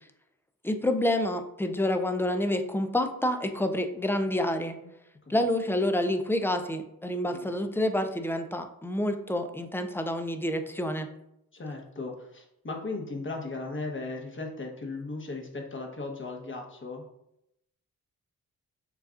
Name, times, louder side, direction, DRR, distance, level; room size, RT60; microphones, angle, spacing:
voice 1, 0.6-4.7 5.3-11.1, left 1 dB, 5° left, 7 dB, 0.3 m, -28 dB
voice 2, 4.6-4.9 5.3-5.4 7.3-7.5 11.5-17.0, left 3 dB, 35° left, 2 dB, 1.0 m, -37 dB
6.8 x 2.3 x 2.4 m, 0.81 s
cardioid pair, 65°, 37 cm